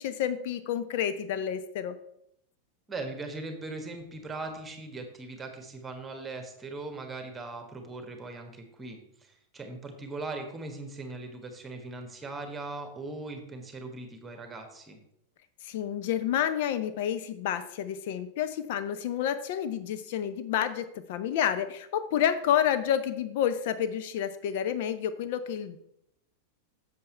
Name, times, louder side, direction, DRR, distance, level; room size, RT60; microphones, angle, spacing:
voice 1, 0.0-1.9 15.6-25.8, left 9 dB, 50° left, 11 dB, 0.7 m, -29 dB
voice 2, 2.9-15.0, right 3 dB, 15° right, 5 dB, 1.4 m, -40 dB
7.6 x 6.9 x 4.4 m, 0.77 s
figure-of-eight pair, 90°, 0 cm